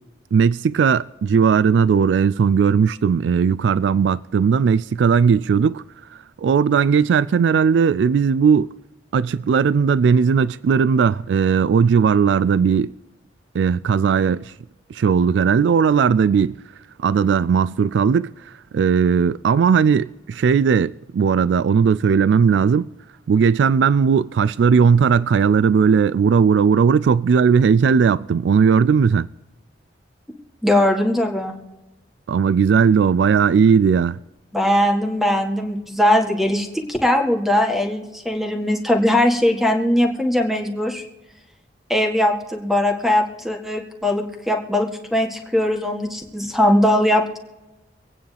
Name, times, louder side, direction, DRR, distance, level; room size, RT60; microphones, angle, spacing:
voice 1, 0.3-5.8 6.4-8.7 9.1-12.9 13.5-14.5 14.9-16.6 17.0-22.9 23.3-29.3 32.3-34.2, right 6 dB, 85° right, 0.3 m, -17 dB
voice 2, 30.6-31.6 34.5-41.0 41.9-47.2, left 1 dB, ahead, 1.7 m, -20 dB
25.5 x 9.2 x 3.4 m
head